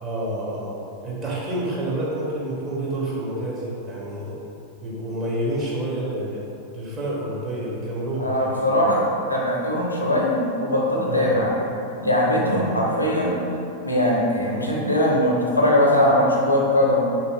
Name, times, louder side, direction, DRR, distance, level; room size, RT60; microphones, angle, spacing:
voice 1, 0.0-4.4 4.8-6.4 6.7-8.9 11.1-11.4 12.4-12.9 14.4-14.6, right 1 dB, 25° right, -6 dB, 0.8 m, -29 dB
voice 2, 8.2-11.5 12.0-13.4 13.8-17.0, left 1 dB, 85° left, -3 dB, 0.5 m, -20 dB
3.3 x 2.7 x 2.3 m, 2.7 s
figure-of-eight pair, 90°, 0 cm